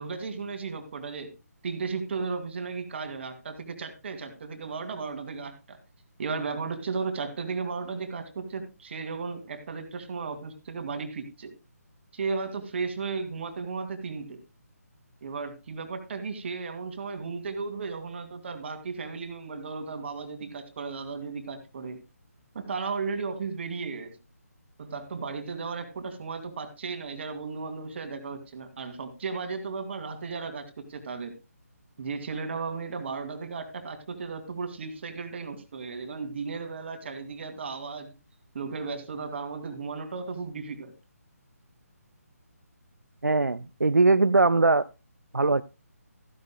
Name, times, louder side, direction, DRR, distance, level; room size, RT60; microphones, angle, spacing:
voice 1, 0.0-1.3 1.6-5.8 6.2-11.5 12.1-14.4 15.2-22.0 22.5-24.2 24.8-31.4 32.0-38.1 38.5-40.9, right 4 dB, 45° right, 2.6 m, -35 dB
voice 2, 43.2-44.9 45.3-45.6, right 3 dB, 90° right, 0.5 m, -21 dB
15.0 x 11.0 x 2.2 m
figure-of-eight pair, 150°, 9 cm